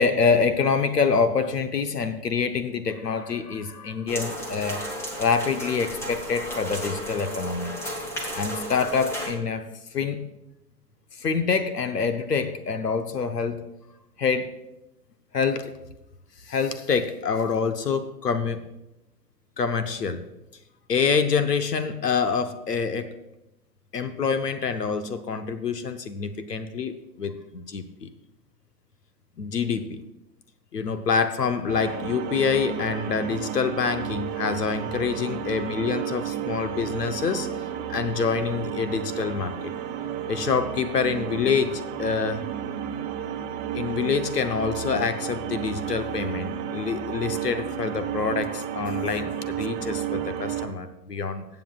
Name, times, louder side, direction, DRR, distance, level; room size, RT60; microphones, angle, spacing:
voice 1, 0.0-4.8 5.2-7.8 8.3-9.7 9.9-10.3 11.2-13.6 14.2-14.6 15.3-15.7 16.4-18.6 19.6-20.2 20.9-23.1 23.9-28.1 29.4-30.0 30.7-37.5 37.9-39.7 40.3-42.4 43.7-51.4, left 5 dB, 70° left, 10 dB, 1.0 m, -26 dB
sound 1, 4.1-9.3, equal, 5° left, 0.8 m, -33 dB
sound 2, 31.7-50.7, right 9 dB, 20° right, 1.0 m, -32 dB
21.5 x 7.8 x 2.4 m, 0.91 s
figure-of-eight pair, 115°, 50 cm